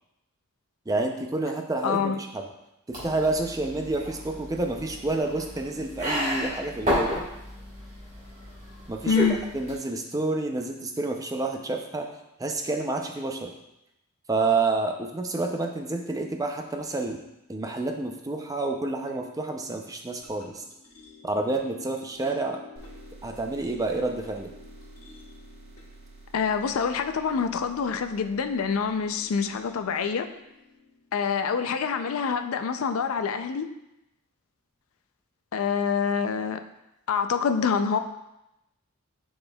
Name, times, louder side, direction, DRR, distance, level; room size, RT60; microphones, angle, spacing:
voice 1, 0.9-2.4 2.9-7.2 8.9-9.2 9.5-12.1 12.4-13.5 14.3-17.2 17.5-20.6 21.2-22.6 23.2-24.5, right 2 dB, 15° right, 3 dB, 0.4 m, -29 dB
voice 2, 1.8-2.2 9.1-9.4 26.3-30.3 31.1-33.7 35.5-36.6 37.1-38.0, left 6 dB, 70° left, 8 dB, 0.4 m, -26 dB
sound 1, 2.9-9.7, equal, 30° right, 1.6 m, -32 dB
sound 2, 20.2-32.6, left 5 dB, 85° left, 1.6 m, -52 dB
sound 3, 22.8-30.3, right 3 dB, 75° right, 1.1 m, -51 dB
9.7 x 4.3 x 2.3 m, 0.89 s
head